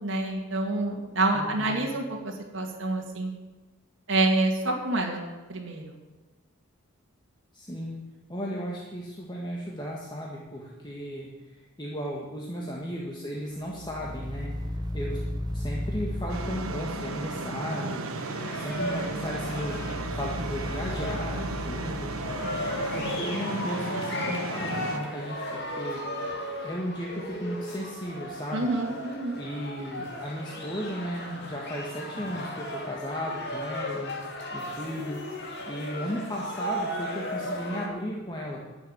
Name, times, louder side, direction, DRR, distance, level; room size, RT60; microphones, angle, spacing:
voice 1, 0.0-3.3 4.1-5.2 5.5-5.9 28.5-29.4, right 2 dB, 60° right, 0 dB, 2.2 m, -27 dB
voice 2, 1.3-1.9 7.5-7.9 8.3-14.5 14.9-15.2 15.5-18.1 18.5-22.1 22.9-26.3 26.6-28.7 29.3-34.1 34.5-35.2 35.7-38.8, equal, 20° left, -3 dB, 1.5 m, -35 dB
sound 1, 13.7-17.4 18.7-23.1, equal, 20° right, 0.8 m, -36 dB
sound 2, 16.3-25.0, right 3 dB, 85° right, 1.2 m, -35 dB
sound 3, 18.2-37.9, left 1 dB, 55° left, 2.4 m, -36 dB
12.0 x 7.0 x 9.5 m, 1.2 s
head